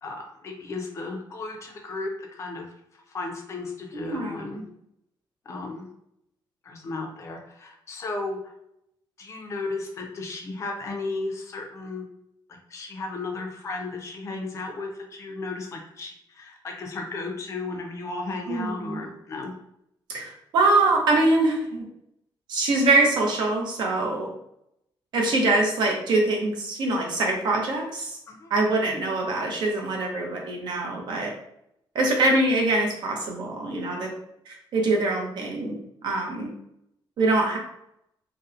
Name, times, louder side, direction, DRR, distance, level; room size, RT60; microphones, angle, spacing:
voice 1, 0.0-2.7 2.9-4.7 5.5-5.9 6.6-8.5 9.2-12.0 12.5-19.5 28.3-28.5, left 3 dB, 35° left, 1 dB, 0.4 m, -34 dB
voice 2, 3.9-4.6 18.5-19.0 20.1-21.8 22.5-24.3 25.1-28.2 28.5-31.3 31.9-34.1 34.5-35.8 36.0-36.5 37.2-37.6, right 2 dB, 60° right, 0 dB, 0.6 m, -24 dB
2.7 x 2.0 x 2.4 m, 0.76 s
cardioid pair, 170°, 9 cm